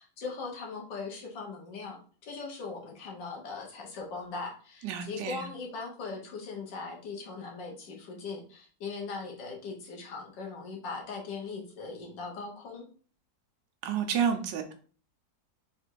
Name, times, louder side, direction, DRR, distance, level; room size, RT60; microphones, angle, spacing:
voice 1, 0.0-12.9, left 4 dB, 90° left, 0 dB, 1.8 m, -40 dB
voice 2, 4.8-5.4 13.8-14.7, right 7 dB, 85° right, 5 dB, 1.3 m, -30 dB
4.2 x 2.5 x 4.5 m, 0.42 s
omnidirectional pair, 1.9 m